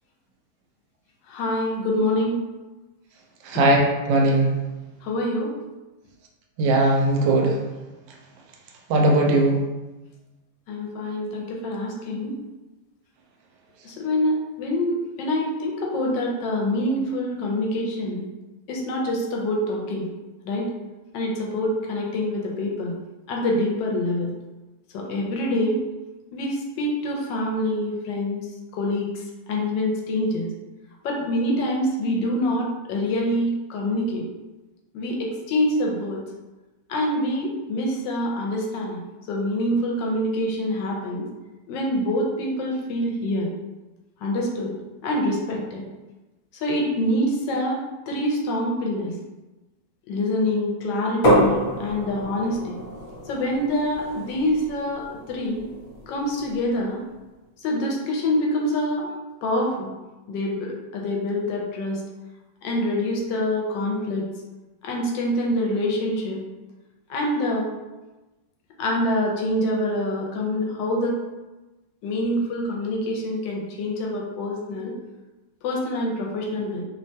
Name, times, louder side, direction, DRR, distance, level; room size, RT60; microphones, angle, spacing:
voice 1, 1.3-2.4 5.0-5.5 10.7-12.3 13.8-18.3 18.7-20.1 20.4-20.7 21.1-22.9 23.3-24.3 24.9-25.8 26.3-28.4 28.7-29.1 29.5-30.5 31.0-34.2 34.9-36.2 36.9-39.0 39.3-41.3 41.7-43.5 44.2-44.7 45.0-45.8 46.6-47.8 48.1-49.1 50.1-52.8 53.3-55.6 56.1-57.0 57.6-59.1 59.4-59.9 60.3-62.0 62.6-64.2 64.8-66.4 67.1-67.7 68.8-71.2 72.0-74.9 75.6-76.8, left 1 dB, 80° left, -1 dB, 1.3 m, -25 dB
voice 2, 3.4-3.8 4.1-4.5 6.6-7.6 8.9-9.6, right 2 dB, 85° right, 0 dB, 1.3 m, -19 dB
sound 1, 51.2-56.9, equal, 55° left, 1.3 m, -27 dB
3.2 x 2.2 x 2.7 m, 1.1 s
omnidirectional pair, 2.0 m